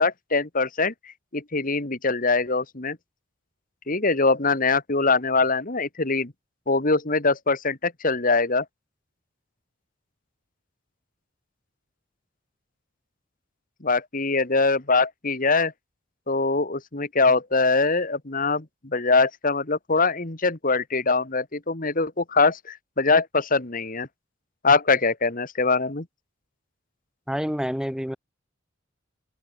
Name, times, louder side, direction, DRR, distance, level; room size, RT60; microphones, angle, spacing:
voice 1, 0.0-3.0 3.9-6.3 6.7-8.7 13.8-15.7 16.3-24.1 24.6-26.1, left 3 dB, 45° left, 2.0 m, -23 dB
voice 2, 27.3-28.2, equal, 5° right, 2.2 m, -27 dB
open air
head